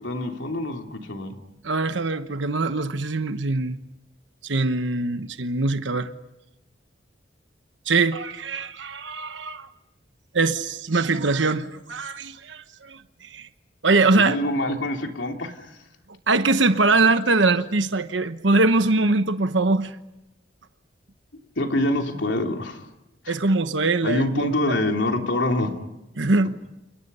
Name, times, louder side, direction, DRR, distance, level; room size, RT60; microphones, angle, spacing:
voice 1, 0.0-1.4 14.1-15.8 21.6-22.9 23.2-23.4 24.0-25.7, left 1 dB, 80° left, 3.1 m, -25 dB
voice 2, 1.6-3.8 4.4-6.1 7.9-9.7 10.3-13.5 13.8-14.4 16.3-20.0 23.3-24.7 26.2-26.5, right 3 dB, 85° right, 1.1 m, -22 dB
30.0 x 29.0 x 5.6 m
head